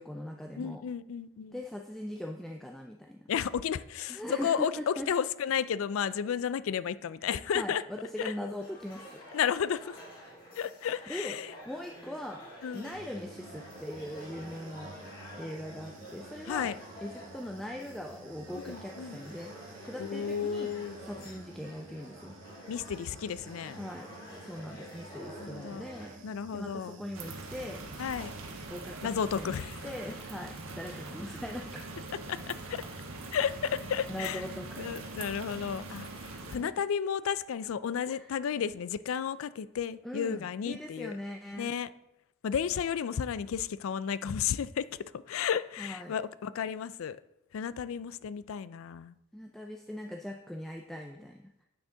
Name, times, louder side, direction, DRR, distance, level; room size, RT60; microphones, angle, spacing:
voice 1, 0.0-0.8 1.5-3.2 4.1-5.1 7.2-9.2 11.1-11.4 11.7-12.4 12.7-14.9 15.3-16.7 17.0-20.7 21.0-22.4 23.8-24.1 24.4-26.2 26.5-27.8 28.7-29.1 29.4-31.8 34.1-34.9 36.6-36.7 38.1-38.3 40.0-41.7 45.8-46.2 49.3-51.6, left 1 dB, ahead, 2 dB, 0.3 m, -41 dB
voice 2, 0.6-1.6 3.3-7.8 8.2-8.5 9.3-10.0 10.6-11.5 12.6-12.9 16.5-16.8 18.5-19.2 20.0-21.0 22.7-23.8 25.4-25.9 26.2-27.0 28.0-28.3 29.0-29.8 32.3-32.8 33.3-34.4 34.8-41.1 41.6-41.9 42.4-47.2 47.5-49.1, left 7 dB, 80° left, 17 dB, 0.4 m, -33 dB
sound 1, 8.6-26.2, equal, 45° left, 3.3 m, -49 dB
Human voice / Buzz, 12.9-28.7, right 2 dB, 65° right, 0.9 m, -52 dB
sound 2, 27.1-36.6, right 3 dB, 80° right, 1.3 m, -42 dB
8.6 x 6.2 x 3.9 m, 0.88 s
head